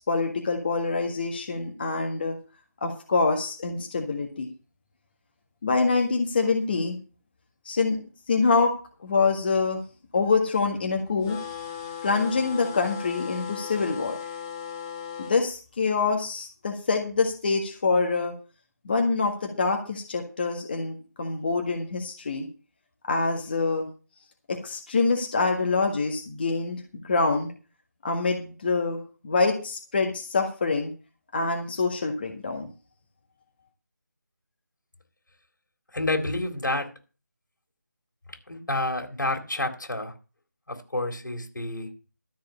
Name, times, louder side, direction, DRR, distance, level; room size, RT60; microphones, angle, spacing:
voice 1, 0.0-2.4 2.8-4.5 5.6-7.0 7.6-8.0 8.3-8.7 9.0-9.8 10.1-11.4 12.0-14.2 15.2-18.3 18.8-22.5 23.1-23.9 24.5-27.5 28.0-30.9 31.3-32.7, left 4 dB, 30° left, 1.7 m, -25 dB
sound 1, 11.2-15.4, left 7 dB, 15° left, 1.3 m, -37 dB
voice 2, 35.9-36.9 38.5-40.1 40.7-41.9, left 2 dB, 90° left, 4.1 m, -29 dB
13.5 x 4.7 x 8.5 m
figure-of-eight pair, 170°, 10 cm